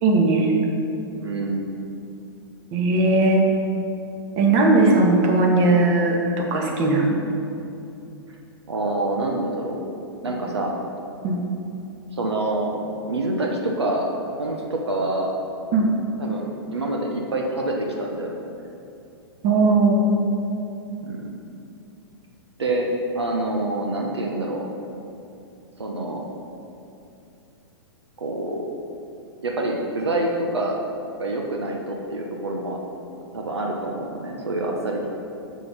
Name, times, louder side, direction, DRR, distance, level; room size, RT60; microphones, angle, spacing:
voice 1, 0.0-0.5 2.7-3.4 4.4-7.2 11.2-11.4 15.7-15.9 19.4-20.1, right 2 dB, 45° right, 0 dB, 1.8 m, -18 dB
voice 2, 1.2-1.7 8.7-9.8 10.2-10.8 12.1-14.1 14.4-15.3 16.2-18.4 21.0-21.3 22.6-22.9 23.1-24.6 25.8-26.2 28.2-28.6 29.4-30.8 31.2-32.8 33.3-35.1, right 2 dB, 90° right, 0 dB, 1.1 m, -26 dB
7.1 x 6.7 x 5.7 m, 2.7 s
hypercardioid pair, 115°, 14 cm